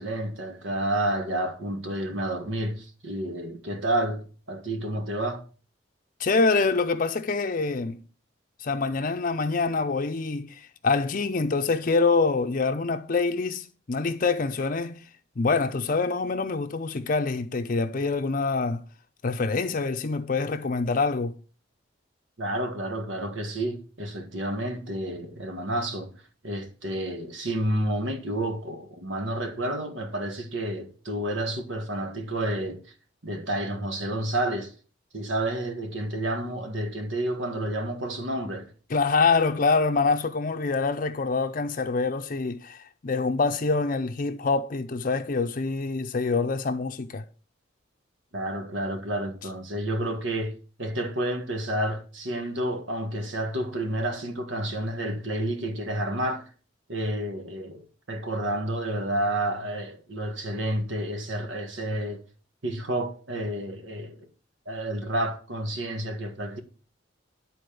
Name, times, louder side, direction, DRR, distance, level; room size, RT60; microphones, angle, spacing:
voice 1, 0.0-5.4 22.4-32.8 33.2-34.7 35.1-38.7 48.3-56.5 56.9-62.2 62.6-64.2 64.6-66.6, right 1 dB, 80° right, 1.6 m, -30 dB
voice 2, 6.2-8.0 8.6-15.0 15.4-18.8 19.2-21.3 38.9-47.2, left 4 dB, 45° left, 0.6 m, -25 dB
11.0 x 4.2 x 6.8 m
head